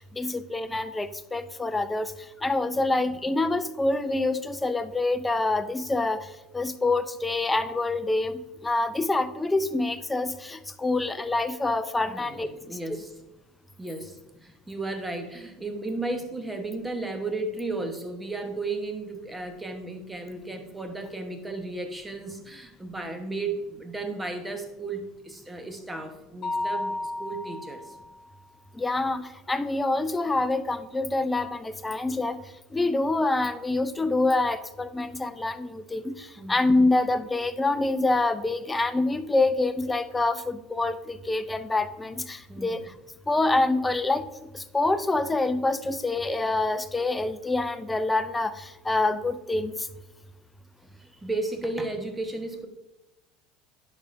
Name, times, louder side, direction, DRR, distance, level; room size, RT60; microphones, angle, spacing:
voice 1, 0.0-2.1 2.4-6.3 6.5-12.5 28.8-32.4 32.7-42.8 43.3-44.2 44.5-49.7, left 2 dB, 15° left, 12 dB, 0.5 m, -26 dB
voice 2, 12.1-13.1 13.8-28.0 36.4-36.6 42.5-42.7 50.9-52.7, right 2 dB, 10° right, 5 dB, 1.1 m, -34 dB
Mallet percussion, 26.4-28.2, left 2 dB, 35° left, 1.1 m, -32 dB
10.5 x 5.0 x 2.6 m, 1.0 s
supercardioid pair, 95°, 0 cm